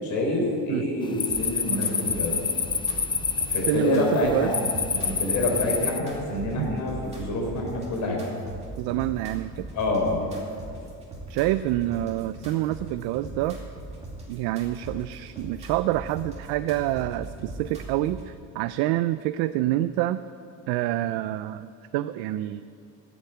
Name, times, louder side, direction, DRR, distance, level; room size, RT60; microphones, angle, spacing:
voice 1, 0.0-2.4 3.5-8.2 9.7-10.2, left 2 dB, 50° left, 0 dB, 3.9 m, -27 dB
sound 1, 1.0-6.0, left 5 dB, 15° left, 0.4 m, -28 dB
sound 2, 1.3-18.3, right 2 dB, 15° right, 2.5 m, -40 dB
voice 2, 3.7-4.5 6.6-6.7 8.8-9.7 11.3-13.6 14.3-20.2 20.7-22.6, right 15 dB, 80° right, 12 dB, 0.5 m, -27 dB
13.5 x 8.9 x 8.1 m, 2.3 s
cardioid pair, 170°, 37 cm